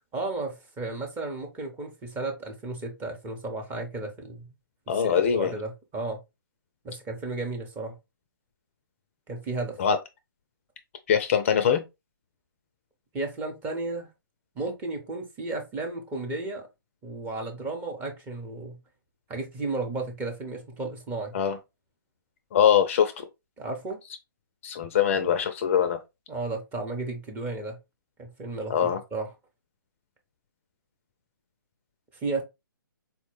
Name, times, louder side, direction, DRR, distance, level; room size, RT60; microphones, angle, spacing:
voice 1, 0.1-4.5 4.9-6.2 6.8-8.0 9.3-9.8 13.1-14.1 14.6-16.7 17.0-18.8 19.3-21.4 23.6-24.0 26.3-27.8 28.2-29.3 32.1-32.4, right 3 dB, 15° right, 0.7 m, -33 dB
voice 2, 4.9-5.5 9.8-10.0 11.1-11.8 21.3-21.6 22.5-23.3 24.6-26.0 28.7-29.0, left 8 dB, 35° left, 0.4 m, -23 dB
4.1 x 2.1 x 3.0 m
hypercardioid pair, 140°, 12 cm